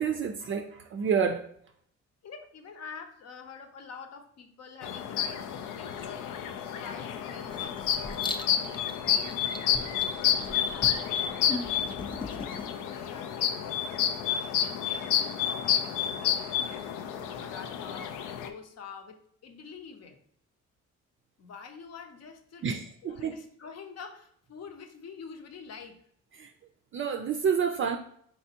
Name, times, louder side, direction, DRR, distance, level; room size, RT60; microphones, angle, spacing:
voice 1, 0.0-1.4 22.6-23.3 26.4-26.5 26.9-28.0, right 6 dB, 45° right, 5 dB, 0.4 m, -28 dB
voice 2, 2.2-6.3 6.7-8.4 9.2-17.1 17.4-20.2 21.4-26.0, left 5 dB, 60° left, 6 dB, 0.7 m, -47 dB
sound 1, 4.8-18.5, left 9 dB, 90° left, 0.5 m, -30 dB
Writing, 7.5-12.7, left 3 dB, 15° left, 0.4 m, -40 dB
4.2 x 3.3 x 2.8 m, 0.65 s
cardioid pair, 90°, 30 cm